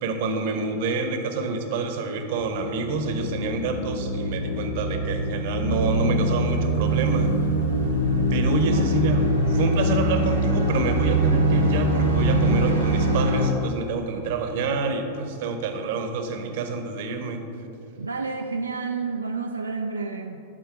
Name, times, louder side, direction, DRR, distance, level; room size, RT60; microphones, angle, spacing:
voice 1, 0.0-7.3 8.3-17.4, right 3 dB, 50° right, 6 dB, 0.8 m, -27 dB
sound 1, 2.4-13.5, right 1 dB, 85° left, 1.2 m, -23 dB
voice 2, 8.6-9.1 18.0-20.4, right 4 dB, 80° right, 3 dB, 0.3 m, -30 dB
11.5 x 4.2 x 4.8 m, 2.8 s
figure-of-eight pair, 90°, 0 cm